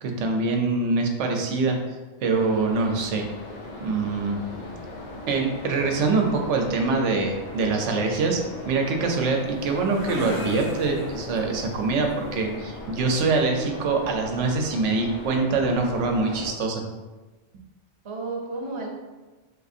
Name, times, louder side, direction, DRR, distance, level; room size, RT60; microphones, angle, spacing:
voice 1, 0.0-1.8 2.2-3.2 3.8-4.4 5.3-8.4 8.6-16.8, right 3 dB, 90° right, 2 dB, 0.9 m, -24 dB
sound 1, 2.3-16.5, left 2 dB, 85° left, 1.0 m, -39 dB
voice 2, 4.5-4.9 18.0-18.9, right 3 dB, 35° right, -2 dB, 0.5 m, -33 dB
sound 2, 9.0-12.6, left 1 dB, 65° left, 1.5 m, -36 dB
4.1 x 2.4 x 2.6 m, 1.2 s
omnidirectional pair, 1.2 m